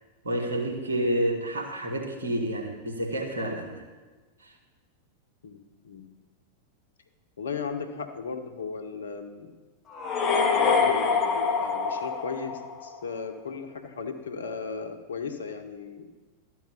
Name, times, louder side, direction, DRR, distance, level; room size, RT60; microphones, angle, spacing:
voice 1, 0.2-3.8 4.4-4.5, right 1 dB, 75° right, 1 dB, 1.6 m, -29 dB
voice 2, 5.4-6.1 7.4-9.5 10.5-16.2, left 5 dB, 70° left, 7 dB, 0.9 m, -36 dB
sound 1, 9.9-13.0, left 5 dB, 25° left, 1.0 m, -25 dB
12.0 x 4.7 x 7.0 m, 1.3 s
figure-of-eight pair, 90°, 0 cm